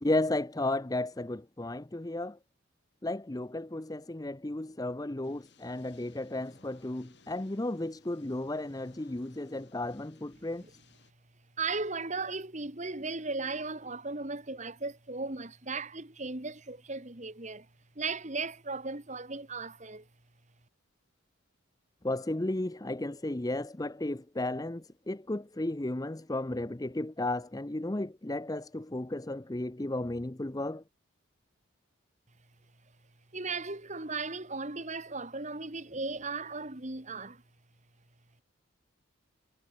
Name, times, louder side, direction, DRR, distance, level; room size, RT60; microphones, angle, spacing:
voice 1, 0.0-2.4 3.0-10.6 22.0-30.8, left 1 dB, 20° left, 0.6 m, -34 dB
sound 1, 5.2-11.1, left 3 dB, 55° left, 6.4 m, -62 dB
voice 2, 11.6-17.7 18.0-20.1 33.3-37.4, right 3 dB, 35° right, 1.8 m, -36 dB
head